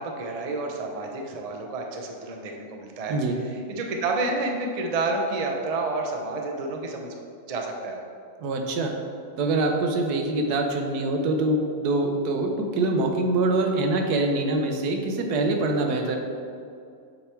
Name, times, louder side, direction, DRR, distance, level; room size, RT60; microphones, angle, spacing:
voice 1, 0.0-3.2 3.7-7.1 7.5-8.0, right 3 dB, 60° right, 1 dB, 0.3 m, -29 dB
voice 2, 8.4-8.9 9.4-16.2, right 2 dB, 80° right, 4 dB, 1.3 m, -24 dB
8.0 x 3.4 x 4.4 m, 2.3 s
omnidirectional pair, 1.6 m